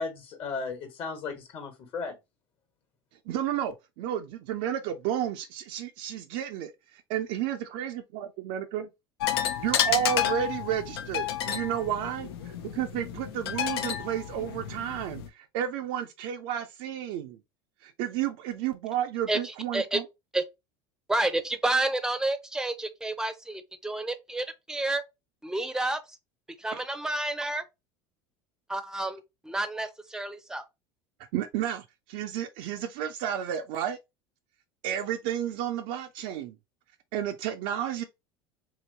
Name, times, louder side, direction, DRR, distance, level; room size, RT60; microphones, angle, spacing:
voice 1, 0.0-2.2, left 4 dB, 50° left, 1.2 m, -35 dB
voice 2, 3.3-6.7 7.1-8.9 9.6-17.4 17.8-20.0 26.7-26.8 31.3-34.0 34.8-36.6 37.1-38.0, right 10 dB, 65° right, 0.4 m, -32 dB
sound 1, 9.2-15.3, left 10 dB, 80° left, 0.4 m, -31 dB
voice 3, 19.3-20.0 20.3-20.4 21.1-25.0 25.4-26.0 26.6-27.6 28.7-30.6, right 2 dB, 5° right, 0.5 m, -30 dB
3.0 x 2.8 x 2.7 m
hypercardioid pair, 85°, 13 cm